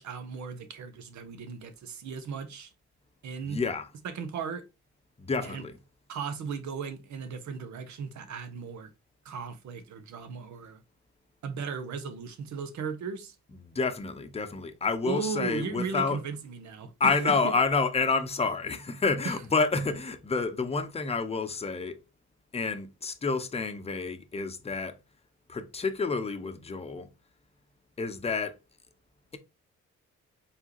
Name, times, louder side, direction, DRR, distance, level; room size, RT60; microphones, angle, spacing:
voice 1, 0.0-2.7 3.2-3.6 4.0-4.6 5.4-5.6 6.1-8.9 9.2-10.8 11.4-13.3 15.0-17.5 19.2-19.3, right 5 dB, 70° right, 1.0 m, -36 dB
voice 2, 3.4-3.9 5.2-5.8 13.6-16.2 17.0-22.0 22.5-25.0 25.5-27.1 28.0-28.5, left 4 dB, 20° left, 0.8 m, -29 dB
4.6 x 3.4 x 2.9 m
cardioid pair, 90°, 30 cm